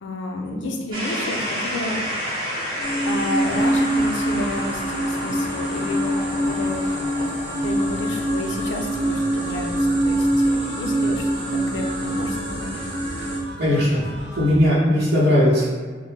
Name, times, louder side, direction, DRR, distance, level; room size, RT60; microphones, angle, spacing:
voice 1, 0.0-2.0 3.1-6.2 6.4-7.0 7.6-12.7, left 2 dB, 80° left, 2 dB, 0.4 m, -30 dB
sound 1, 0.9-10.7, equal, 25° right, 0.8 m, -32 dB
sound 2, 2.8-13.4, right 1 dB, 10° right, 1.4 m, -24 dB
sound 3, 3.4-14.6, right 1 dB, 10° left, 0.8 m, -37 dB
voice 2, 13.6-14.0 14.4-15.7, left 1 dB, 55° right, -12 dB, 0.7 m, -18 dB
2.8 x 2.1 x 3.3 m, 1.5 s
head